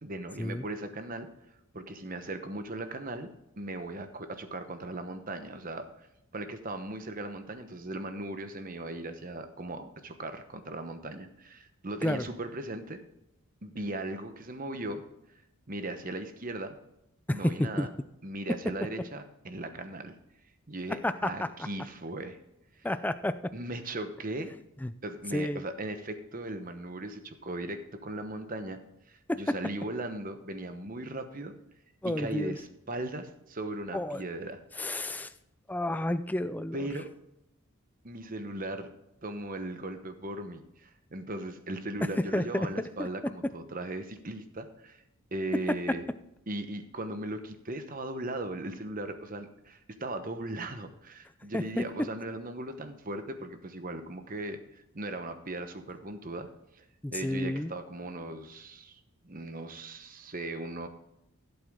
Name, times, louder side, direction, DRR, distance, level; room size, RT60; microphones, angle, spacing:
voice 1, 0.0-1.3 1.7-3.3 3.6-6.1 6.3-13.0 13.6-15.0 15.7-16.8 17.3-17.9 18.2-20.1 20.7-22.4 23.5-24.5 25.0-28.8 29.1-31.5 32.1-34.6 36.7-37.1 38.0-38.9 39.2-45.0 45.3-46.0 46.5-56.5 56.7-56.8 57.1-60.9, right 2 dB, 40° right, 8 dB, 1.0 m, -38 dB
voice 2, 17.3-17.9 21.0-21.5 22.8-23.5 24.8-24.9 25.3-25.6 29.3-29.4 32.0-32.6 33.9-34.2 34.8-35.3 35.7-36.9 42.3-42.7 43.0-43.1 51.5-51.8 57.0-57.7, left 1 dB, 5° left, 11 dB, 0.4 m, -30 dB
16.0 x 7.9 x 3.7 m, 0.84 s
head